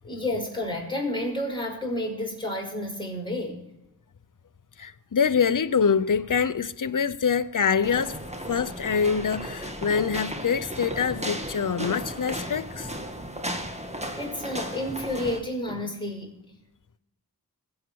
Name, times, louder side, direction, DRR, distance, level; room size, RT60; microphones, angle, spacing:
voice 1, 0.0-3.7 14.2-16.4, left 1 dB, 10° left, 5.7 m, -30 dB
voice 2, 4.8-8.2 8.5-12.9, left 6 dB, 55° left, 0.8 m, -25 dB
sound 1, 7.8-15.4, equal, 15° right, 2.1 m, -35 dB
21.5 x 8.4 x 4.7 m
wide cardioid pair, 40°, 38 cm